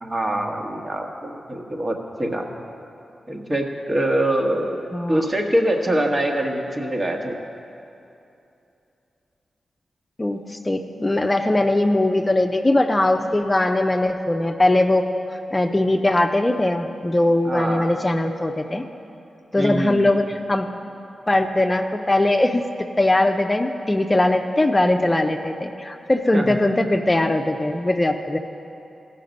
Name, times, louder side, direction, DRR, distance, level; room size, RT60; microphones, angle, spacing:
voice 1, 0.0-2.5 3.3-7.3 17.4-17.9 19.6-20.1 26.3-26.6, right 1 dB, 35° right, 2 dB, 1.4 m, -24 dB
voice 2, 4.9-5.2 10.2-15.1 15.3-18.8 19.5-20.7 21.3-28.4, left 1 dB, 25° left, 5 dB, 0.6 m, -20 dB
15.0 x 5.9 x 5.3 m, 2.7 s
supercardioid pair, 45°, 0 cm